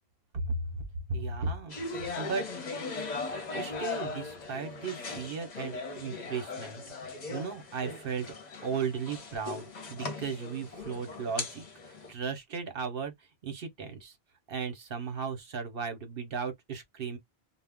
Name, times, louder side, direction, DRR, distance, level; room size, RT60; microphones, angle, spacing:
voice 1, 1.1-1.8 2.2-2.4 3.5-6.8 7.3-8.3 8.6-11.6 12.1-13.1 13.4-14.2 14.5-17.2, right 5 dB, 60° right, 1.0 m, -35 dB
sound 1, 1.7-12.1, left 4 dB, 45° left, 0.8 m, -39 dB
2.3 x 2.1 x 3.5 m
omnidirectional pair, 1.1 m